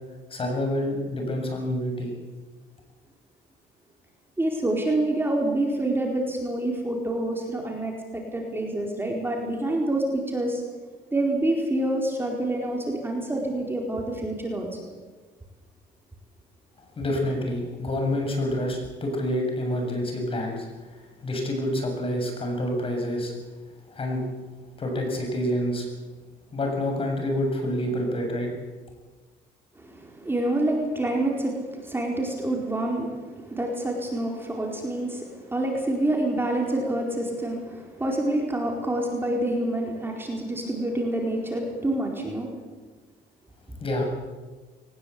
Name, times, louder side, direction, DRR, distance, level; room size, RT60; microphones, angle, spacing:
voice 1, 0.3-2.1 17.0-20.7 21.2-23.3 23.9-24.2 24.8-25.9 26.5-28.5 43.8-44.1, left 1 dB, 30° left, 2 dB, 7.6 m, -27 dB
voice 2, 4.4-10.6 11.1-14.9 29.8-42.5, right 1 dB, 15° right, 0 dB, 4.5 m, -27 dB
21.5 x 20.0 x 8.5 m, 1.3 s
cardioid pair, 110°, 17 cm